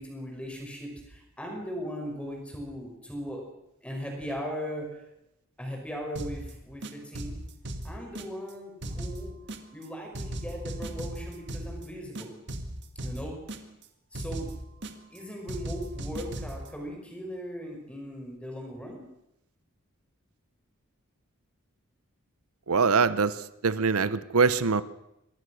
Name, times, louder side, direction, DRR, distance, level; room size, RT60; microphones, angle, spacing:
voice 1, 0.0-3.4 3.8-4.9 5.6-7.3 7.8-9.3 9.7-12.3 13.0-13.3 14.1-14.5 15.1-19.0, equal, 5° left, 1 dB, 5.4 m, -38 dB
sound 1, 6.2-6.5 6.8-8.5 8.8-9.9 10.1-11.9 12.2-13.9 14.1-15.2 15.5-16.7, right 1 dB, 55° right, 1.9 m, -37 dB
voice 2, 22.7-23.4 23.6-24.8, right 5 dB, 90° right, 15 dB, 0.9 m, -23 dB
24.0 x 17.5 x 6.4 m, 0.85 s
head